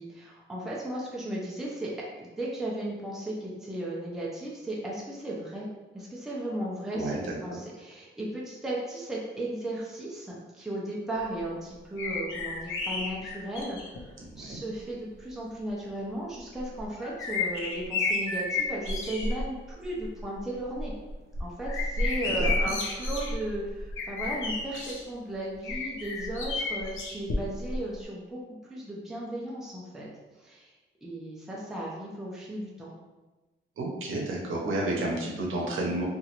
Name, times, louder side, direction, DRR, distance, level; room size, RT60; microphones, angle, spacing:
voice 1, 0.0-5.7 5.9-20.9 21.4-30.1 30.4-30.8 31.0-32.9, right 1 dB, ahead, -5 dB, 0.4 m, -36 dB
voice 2, 6.9-7.4 14.2-14.6 22.3-22.7 33.8-36.0, right 2 dB, 90° right, -2 dB, 0.7 m, -31 dB
sound 1, 12.0-14.0 14.9-15.0 16.6-19.5 19.8-20.2 20.6-25.0 25.6-27.8 28.0-28.1, left 2 dB, 85° left, 0.6 m, -31 dB
2.9 x 2.4 x 2.9 m, 1.1 s
wide cardioid pair, 175°, 20 cm